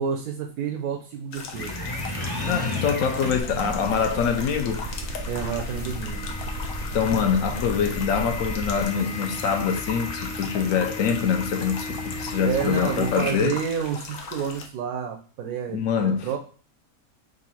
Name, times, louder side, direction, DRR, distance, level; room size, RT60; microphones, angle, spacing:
voice 1, 0.0-1.8 5.3-6.3 12.4-16.4, right 7 dB, 85° right, 1.0 m, -29 dB
sound 1, 1.3-14.7, left 4 dB, 90° left, 1.1 m, -39 dB
sound 2, 1.5-13.4, left 1 dB, 20° left, 0.7 m, -34 dB
voice 2, 2.4-4.8 6.9-13.6 15.7-16.3, left 7 dB, 70° left, 0.9 m, -24 dB
sound 3, 3.5-8.8, right 3 dB, 65° right, 0.6 m, -35 dB
3.8 x 2.5 x 4.1 m
omnidirectional pair, 1.5 m